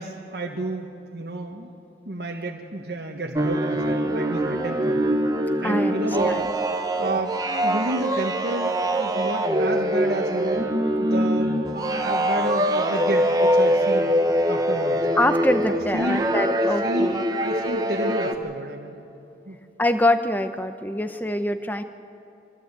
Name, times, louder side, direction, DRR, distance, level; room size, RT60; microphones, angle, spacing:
voice 1, 0.0-1.7 2.0-5.0 5.6-6.3 7.0-7.3 7.6-14.1 14.5-15.1 15.7-16.2 16.5-19.0 19.5-19.6, right 1 dB, 65° right, 0 dB, 1.4 m, -31 dB
sound 1, 3.3-18.3, right 1 dB, 20° right, 1.0 m, -23 dB
voice 2, 5.6-6.5 15.2-17.2 19.8-21.8, left 1 dB, 10° left, 9 dB, 0.8 m, -24 dB
23.0 x 15.5 x 8.3 m, 2.9 s
head